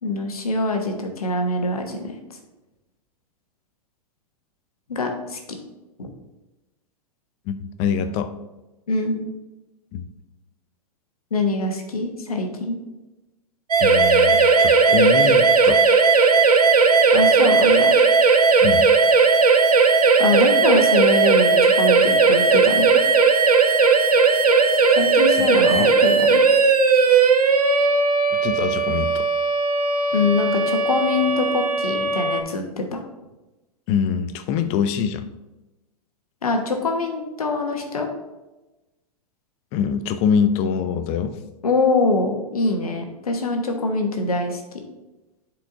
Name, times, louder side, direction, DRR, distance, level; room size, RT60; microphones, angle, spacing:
voice 1, 0.0-2.1 4.9-5.4 6.0-6.1 8.9-9.2 11.3-12.8 17.1-17.9 20.2-23.1 24.9-26.4 30.1-33.0 36.4-38.1 41.6-44.6, left 3 dB, 70° left, 4 dB, 1.3 m, -24 dB
voice 2, 7.5-8.3 9.9-10.1 13.8-15.8 18.6-18.9 25.4-25.9 28.3-29.3 33.9-35.3 39.7-41.4, left 7 dB, 35° left, 10 dB, 0.6 m, -24 dB
sound 1, 13.7-32.4, right 4 dB, 80° right, 0.7 m, -17 dB
11.0 x 4.6 x 2.7 m, 1.1 s
figure-of-eight pair, 100°, 19 cm